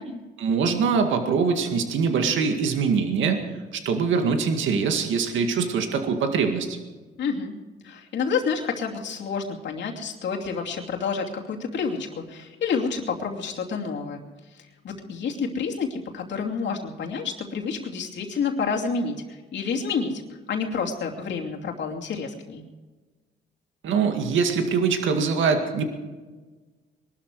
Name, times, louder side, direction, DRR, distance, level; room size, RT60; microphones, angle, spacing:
voice 1, 0.4-3.4 3.7-6.8 23.8-25.8, right 5 dB, 75° right, 5 dB, 2.0 m, -23 dB
voice 2, 7.2-7.5 7.8-14.2 14.5-20.2 20.5-22.6, left 5 dB, 65° left, 0 dB, 2.8 m, -29 dB
22.0 x 12.5 x 4.8 m, 1.3 s
cardioid pair, 90°, 20 cm